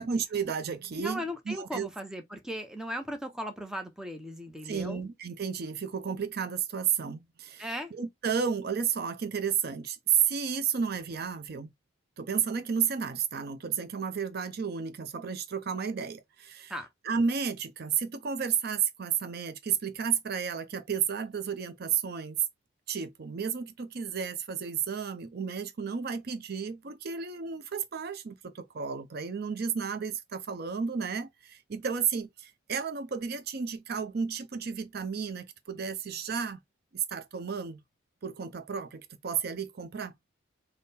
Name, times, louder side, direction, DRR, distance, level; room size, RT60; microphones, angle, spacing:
voice 1, 0.0-1.9 4.6-11.7 12.2-16.7 17.0-22.4 22.9-36.6 36.9-37.8 38.2-40.1, right 7 dB, 55° right, 0.5 m, -32 dB
voice 2, 1.0-5.0 7.6-7.9 16.7-16.9, equal, 5° right, 0.6 m, -37 dB
3.7 x 2.1 x 4.1 m
head